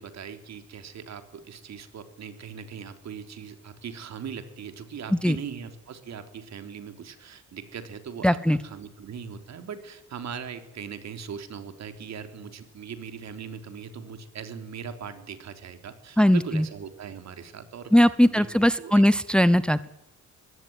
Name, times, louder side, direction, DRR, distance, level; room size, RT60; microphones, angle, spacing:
voice 1, 0.0-19.0, right 7 dB, 60° right, 8 dB, 3.5 m, -40 dB
voice 2, 8.2-8.6 16.2-16.6 17.9-19.9, equal, 5° left, 15 dB, 0.9 m, -19 dB
22.0 x 17.0 x 9.6 m, 0.85 s
cardioid pair, 90°, 30 cm